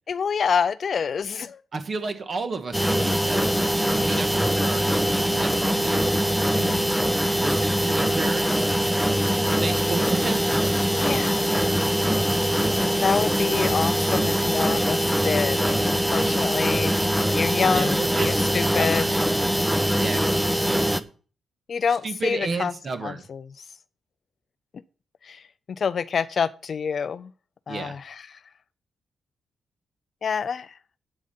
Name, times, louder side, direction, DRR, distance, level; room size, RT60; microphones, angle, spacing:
voice 1, 0.1-1.6 6.5-7.0 11.0-11.6 12.7-16.9 17.3-19.1 21.7-22.7 23.0-23.4 25.2-25.4 25.8-27.3 27.7-28.2 30.2-30.7, left 6 dB, 45° left, 0.4 m, -27 dB
voice 2, 1.7-6.0 6.5-6.8 7.4-8.7 9.5-10.4 17.7-19.3 19.9-21.1 22.0-23.2 27.7-28.0, right 4 dB, 35° right, 1.6 m, -32 dB
sound 1, 2.7-21.0, equal, ahead, 0.6 m, -23 dB
8.8 x 8.4 x 5.5 m
wide cardioid pair, 155°, 0 cm